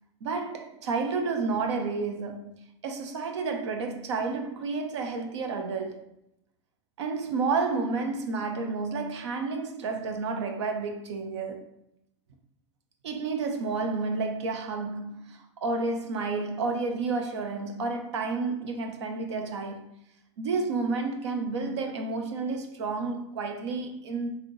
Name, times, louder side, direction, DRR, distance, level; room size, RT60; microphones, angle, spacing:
voice 1, 0.2-2.5 2.8-6.0 7.0-11.6 13.0-19.9 20.4-24.3, right 4 dB, 75° right, 0.7 m, -30 dB
4.0 x 2.7 x 3.1 m
hypercardioid pair, 95°, 15 cm